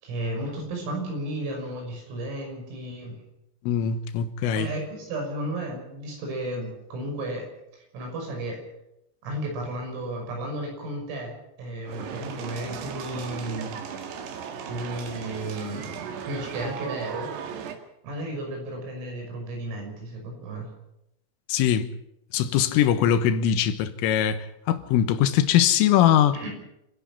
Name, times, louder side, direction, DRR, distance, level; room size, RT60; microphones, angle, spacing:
voice 1, 0.0-3.2 4.5-7.5 7.7-8.6 9.2-13.7 14.7-17.3 18.0-20.7 26.3-26.5, right 1 dB, 85° right, 8.8 m, -33 dB
voice 2, 3.6-4.7 21.5-21.9 22.3-26.4, left 10 dB, 85° left, 3.7 m, -22 dB
sound 1, 11.8-17.8, right 7 dB, 65° right, 3.6 m, -36 dB
28.5 x 11.5 x 8.7 m
omnidirectional pair, 5.8 m